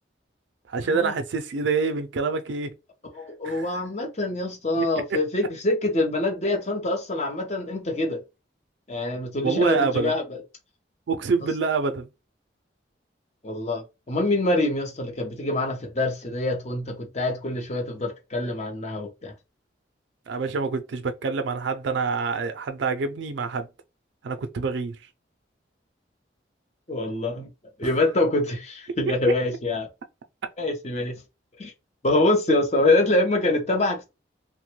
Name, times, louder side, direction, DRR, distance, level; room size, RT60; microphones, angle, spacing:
voice 1, 0.7-2.7 3.4-3.8 4.8-5.2 9.4-10.1 11.1-12.1 20.3-23.7 24.2-25.0 27.8-27.9, right 4 dB, 75° right, 0.4 m, -26 dB
voice 2, 3.1-8.2 8.9-10.4 13.4-19.3 26.9-27.5 27.8-29.9 30.6-31.2 31.6-31.7 32.0-34.1, left 2 dB, 35° left, 0.6 m, -25 dB
3.0 x 2.2 x 3.0 m
head